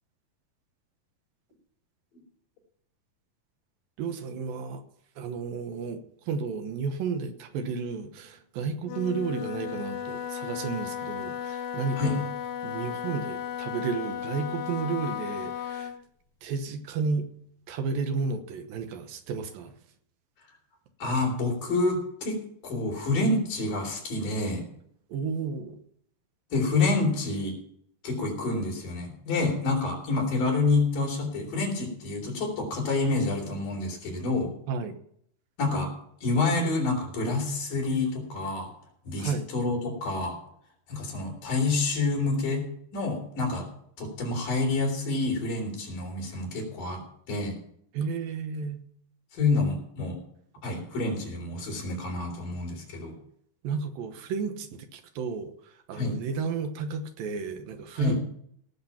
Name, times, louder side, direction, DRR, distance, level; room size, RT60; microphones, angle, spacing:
voice 1, 4.0-4.8 5.2-12.3 12.6-15.9 16.4-17.3 17.7-19.7 25.1-25.8 34.7-35.0 39.2-39.5 47.9-48.8 53.6-58.2, right 5 dB, 80° right, 8 dB, 2.8 m, -32 dB
Wind instrument woodwind instrument, 8.8-16.0, left 9 dB, 85° left, 2.6 m, -35 dB
voice 2, 21.0-24.6 26.5-27.5 28.0-34.5 35.6-35.9 36.2-38.7 39.0-40.4 40.9-42.6 42.9-43.7 44.0-47.0 47.3-47.6 49.3-50.2 50.6-53.1 55.9-56.2 58.0-58.2, left 3 dB, 65° left, -1 dB, 5.1 m, -28 dB
18.0 x 6.7 x 5.7 m, 0.68 s
omnidirectional pair, 4.1 m